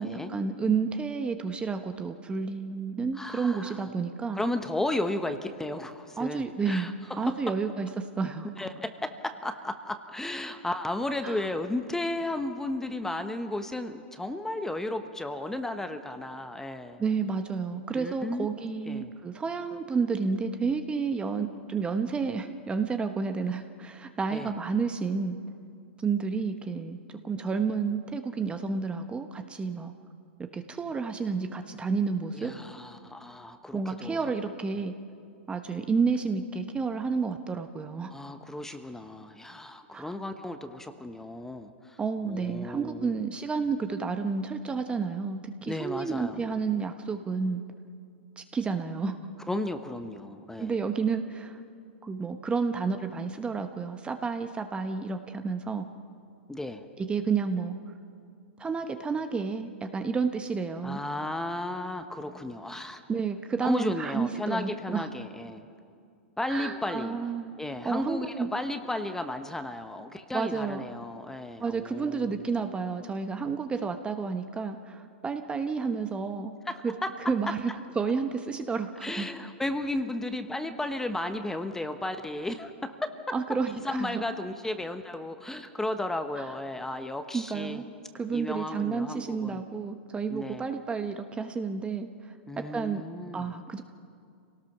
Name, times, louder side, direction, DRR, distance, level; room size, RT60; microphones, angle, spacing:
voice 1, 0.0-4.4 6.2-8.5 11.2-11.4 17.0-25.4 26.0-29.9 30.5-32.5 33.7-34.9 35.5-38.3 39.9-40.1 42.0-47.6 48.4-49.2 50.6-51.6 52.0-55.9 57.0-57.9 58.6-61.0 63.1-65.1 66.5-67.5 67.8-68.5 70.3-70.8 71.6-76.5 76.8-76.9 77.3-79.3 83.3-84.2 86.4-86.5 87.3-87.8 88.1-92.3 92.7-93.0 93.3-93.8, right 5 dB, 15° right, 7 dB, 1.1 m, -30 dB
voice 2, 3.1-3.8 4.3-6.9 7.2-7.4 8.6-17.0 17.9-18.5 18.9-19.1 24.3-24.5 32.3-34.2 38.1-42.0 42.2-43.2 45.7-46.5 49.5-50.7 56.5-56.9 60.8-63.0 63.6-65.7 66.4-67.2 67.6-72.5 76.7-77.1 79.0-83.1 83.8-87.8 88.3-89.6 90.3-90.6 92.5-93.5, left 1 dB, 5° left, 8 dB, 1.1 m, -34 dB
27.0 x 18.5 x 6.0 m, 2.3 s
hypercardioid pair, 115°, 6 cm